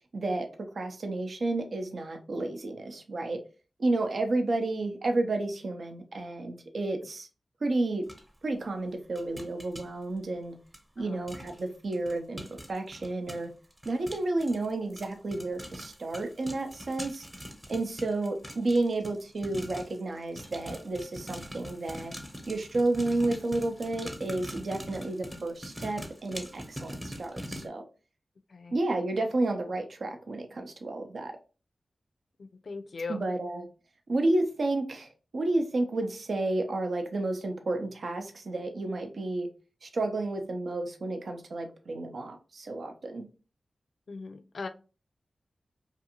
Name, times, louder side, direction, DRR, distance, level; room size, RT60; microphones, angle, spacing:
voice 1, 0.1-3.4 3.8-7.3 7.6-8.0 8.4-10.6 11.0-12.4 12.7-13.5 13.9-17.3 17.7-22.1 22.5-27.8 28.7-31.3 33.1-33.7 34.1-39.5 39.8-43.3, right 2 dB, 70° right, 0.5 m, -31 dB
sound 1, 8.1-8.2 9.2-9.9 10.7-10.8 11.3-11.6 11.9-20.0 20.4-27.7, equal, 20° right, 0.8 m, -42 dB
voice 2, 32.6-33.2 44.1-44.7, left 4 dB, 70° left, 0.3 m, -38 dB
2.4 x 2.4 x 2.8 m
cardioid pair, 45°, 0 cm